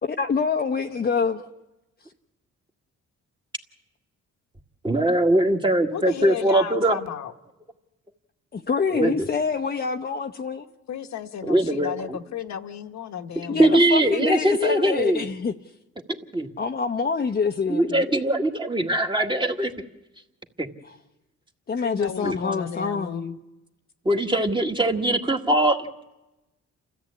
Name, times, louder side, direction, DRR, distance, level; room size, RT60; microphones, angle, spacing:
voice 1, 0.0-1.4 8.5-10.7 13.5-15.5 16.6-18.1 21.7-23.4, left 5 dB, 30° left, 4 dB, 0.8 m, -26 dB
voice 2, 4.8-7.0 8.9-9.3 11.4-12.2 13.6-15.3 16.3-16.5 17.7-19.7 20.6-20.7 22.2-22.4 24.1-25.9, right 1 dB, 15° right, 4 dB, 1.8 m, -21 dB
voice 3, 5.9-7.3 10.9-13.8 21.8-23.3, left 8 dB, 65° left, 6 dB, 1.2 m, -33 dB
29.0 x 14.0 x 8.6 m, 1.0 s
cardioid pair, 90°, 30 cm